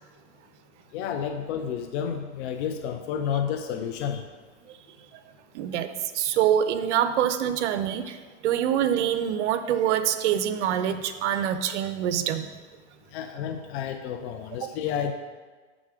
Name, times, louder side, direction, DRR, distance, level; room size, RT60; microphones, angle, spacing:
voice 1, 0.9-4.3 13.1-15.1, left 8 dB, 65° left, 5 dB, 0.6 m, -30 dB
voice 2, 5.5-5.9 6.1-8.2 8.4-12.5, right 10 dB, 75° right, 11 dB, 0.6 m, -25 dB
6.2 x 3.7 x 4.8 m, 1.4 s
supercardioid pair, 120°, 36 cm